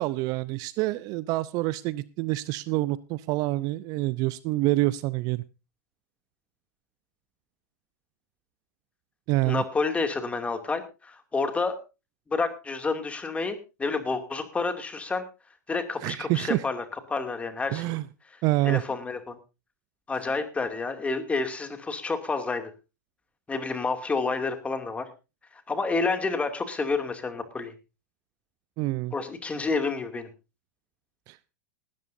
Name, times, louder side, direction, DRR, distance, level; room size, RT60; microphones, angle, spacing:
voice 1, 0.0-5.4 9.3-9.6 16.0-16.6 17.7-18.0 18.4-18.8 28.8-29.1 31.3-31.4, right 18 dB, 45° right, 19 dB, 0.6 m, -27 dB
voice 2, 9.4-11.8 12.3-15.2 15.7-17.9 18.3-19.4 20.1-22.7 23.5-25.1 25.5-27.7 29.1-30.3, left 4 dB, 15° left, 7 dB, 2.4 m, -29 dB
19.0 x 13.0 x 2.6 m, 0.29 s
hypercardioid pair, 100°, 9 cm